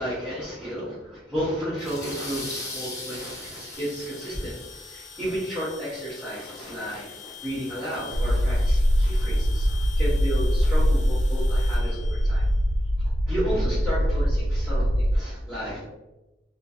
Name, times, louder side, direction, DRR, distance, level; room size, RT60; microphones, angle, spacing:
voice 1, 0.0-4.5 4.9-12.4 13.3-15.8, equal, 5° right, -14 dB, 1.0 m, -32 dB
sound 1, 1.8-5.2, left 2 dB, 15° left, 0.4 m, -38 dB
sound 2, 3.7-13.0, left 7 dB, 85° left, 0.4 m, -45 dB
sound 3, 8.1-15.2, equal, 70° right, 0.3 m, -22 dB
3.0 x 2.4 x 2.7 m, 1.0 s
head